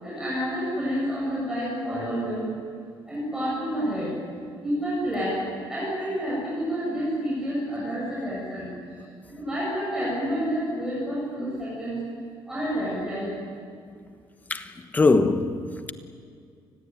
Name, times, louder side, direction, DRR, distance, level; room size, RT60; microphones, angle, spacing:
voice 1, 0.0-2.5 3.1-4.1 4.6-5.4 5.7-8.7 9.4-12.0 12.5-13.3, equal, 5° right, 7.9 m, -29 dB
voice 2, 14.5-15.9, left 3 dB, 20° left, 1.3 m, -22 dB
29.0 x 20.5 x 9.3 m
cardioid pair, 165°, 9 cm